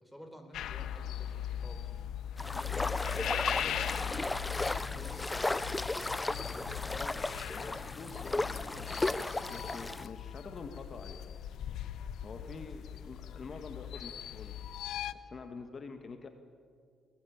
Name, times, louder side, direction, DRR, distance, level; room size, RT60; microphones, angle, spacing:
voice 1, 0.0-1.9 3.1-6.7 12.5-12.6, equal, ahead, 5 dB, 4.2 m, -51 dB
sound 1, 0.5-15.1, left 10 dB, 75° left, 0.9 m, -40 dB
sound 2, 2.4-10.1, left 2 dB, 15° left, 0.7 m, -35 dB
voice 2, 2.5-4.3 6.9-7.3 7.5-8.9 9.5-11.2 12.2-16.3, left 4 dB, 45° left, 6 dB, 1.8 m, -47 dB
22.0 x 19.0 x 8.8 m, 2.2 s
cardioid pair, 90°, 0 cm